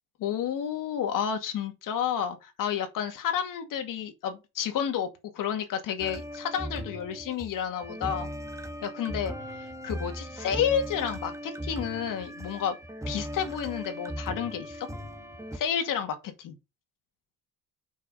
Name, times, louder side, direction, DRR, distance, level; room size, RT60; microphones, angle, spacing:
voice 1, 0.2-5.1 5.3-8.3 8.8-12.8 13.1-14.9 15.5-16.5, left 8 dB, 65° left, 2.3 m, -31 dB
sound 1, 6.0-15.6, equal, 10° right, 1.5 m, -38 dB
6.3 x 5.9 x 5.6 m
cardioid pair, 105°, 35 cm